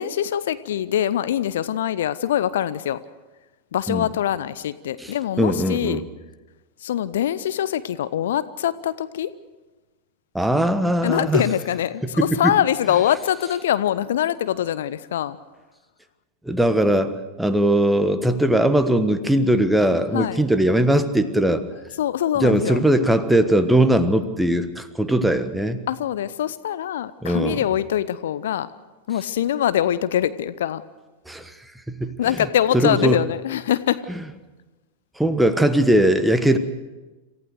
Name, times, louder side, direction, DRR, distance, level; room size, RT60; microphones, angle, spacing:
voice 1, 0.0-3.0 3.7-6.0 6.8-9.3 11.0-15.4 20.1-20.4 22.0-22.8 25.9-28.7 29.1-30.8 32.2-34.1, left 11 dB, 60° left, 15 dB, 0.6 m, -23 dB
voice 2, 5.0-6.0 10.3-11.4 12.2-12.5 16.4-21.6 22.4-25.9 27.2-27.6 31.3-31.5 31.9-32.2 32.7-33.2 35.2-36.6, right 1 dB, 5° right, 10 dB, 1.3 m, -20 dB
27.0 x 15.0 x 6.5 m, 1.2 s
figure-of-eight pair, 90°, 0 cm